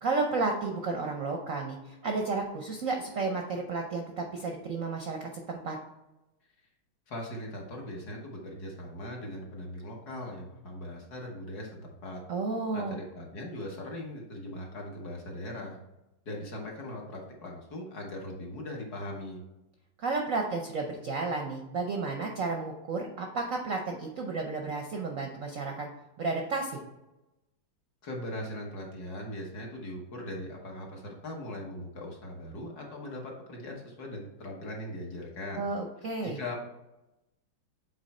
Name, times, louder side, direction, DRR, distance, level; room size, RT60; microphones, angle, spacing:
voice 1, 0.0-5.8 12.3-13.0 20.0-25.9 26.2-26.8 35.6-36.4, right 3 dB, 65° right, 2 dB, 0.8 m, -32 dB
voice 2, 7.1-12.2 12.7-15.8 16.2-19.4 28.0-35.7 36.2-36.6, left 1 dB, 55° left, -1 dB, 1.5 m, -40 dB
8.0 x 3.2 x 4.2 m, 0.97 s
omnidirectional pair, 2.2 m